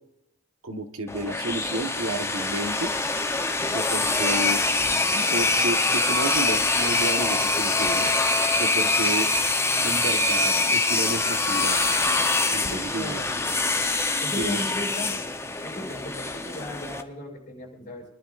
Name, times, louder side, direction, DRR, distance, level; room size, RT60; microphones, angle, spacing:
voice 1, 0.6-2.9 3.7-4.6 5.1-8.1 8.6-9.3 9.8-11.8 12.5-13.5 14.4-14.6, right 2 dB, 85° right, 6 dB, 1.2 m, -31 dB
sound 1, 1.1-17.0, left 3 dB, 15° left, 0.7 m, -24 dB
voice 2, 12.6-13.3 14.2-15.1 15.6-18.0, left 1 dB, 45° left, -1 dB, 5.7 m, -36 dB
28.5 x 11.5 x 2.4 m, 0.90 s
head